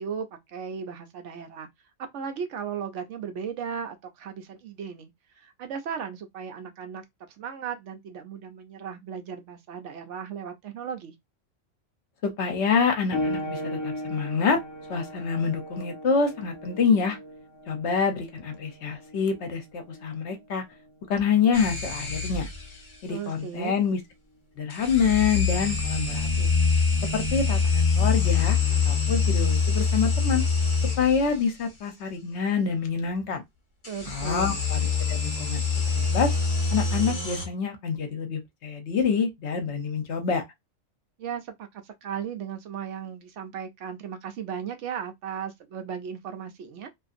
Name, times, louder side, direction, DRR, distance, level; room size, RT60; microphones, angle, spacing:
voice 1, 0.0-1.7 2.0-5.1 5.4-7.0 7.4-11.1 23.1-23.8 33.9-34.6 41.2-46.9, right 7 dB, 70° right, 0.9 m, -36 dB
voice 2, 12.2-14.6 14.9-17.2 17.7-20.6 21.1-22.5 23.0-24.0 24.6-26.5 27.1-28.6 28.8-30.4 31.0-33.4 34.1-34.8 35.1-35.6 36.0-36.3 36.7-40.4, left 6 dB, 65° left, 0.9 m, -26 dB
sound 1, 13.1-23.3 24.3-24.4 25.1-25.2, left 1 dB, 25° left, 1.0 m, -38 dB
sound 2, 21.5-22.8 24.7-31.4 33.8-37.5, left 5 dB, 40° left, 1.0 m, -25 dB
2.6 x 2.5 x 2.4 m
omnidirectional pair, 1.3 m